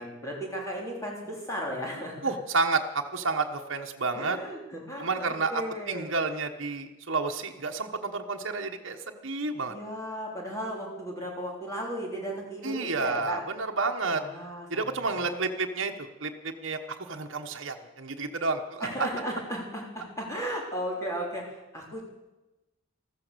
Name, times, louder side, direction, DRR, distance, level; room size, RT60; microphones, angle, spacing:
voice 1, 0.0-2.3 4.1-6.1 9.6-13.4 14.1-15.3 18.8-22.0, equal, 15° left, -2 dB, 3.7 m, -35 dB
voice 2, 2.2-4.4 5.0-9.7 12.6-14.2 14.7-18.9, right 3 dB, 60° right, 3 dB, 1.3 m, -30 dB
14.5 x 14.0 x 6.9 m, 1.0 s
head